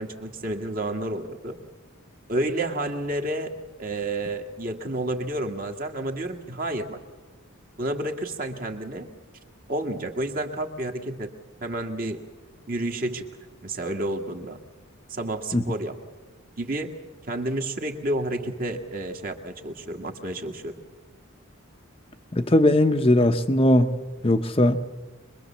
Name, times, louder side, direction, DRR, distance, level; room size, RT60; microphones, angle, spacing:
voice 1, 0.0-1.6 2.3-3.5 3.8-7.0 7.8-9.1 9.7-11.3 11.6-12.2 12.7-13.3 13.6-14.6 15.1-15.9 16.6-16.9 17.3-20.7, right 1 dB, 40° right, 4 dB, 1.7 m, -30 dB
voice 2, 22.3-23.9 24.2-24.8, left 1 dB, 25° left, 6 dB, 0.8 m, -19 dB
25.0 x 21.5 x 7.2 m, 1.2 s
head